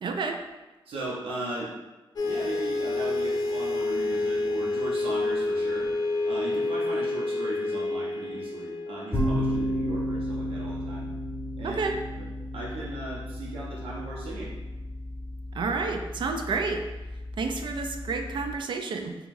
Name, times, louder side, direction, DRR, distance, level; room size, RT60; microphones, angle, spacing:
voice 1, 0.0-0.4 11.6-12.0 15.5-16.8 17.4-19.1, right 4 dB, 60° right, 5 dB, 0.4 m, -30 dB
voice 2, 0.9-1.7 2.2-5.9 6.2-11.1 11.6-11.8 12.1-12.3 12.5-14.5, right 2 dB, 80° right, -4 dB, 0.8 m, -37 dB
sound 1, 2.2-9.9, left 2 dB, 45° left, 0.5 m, -29 dB
sound 2, 9.1-18.5, equal, ahead, 1.4 m, -33 dB
4.6 x 2.3 x 2.6 m, 1.1 s
cardioid pair, 95°, 9 cm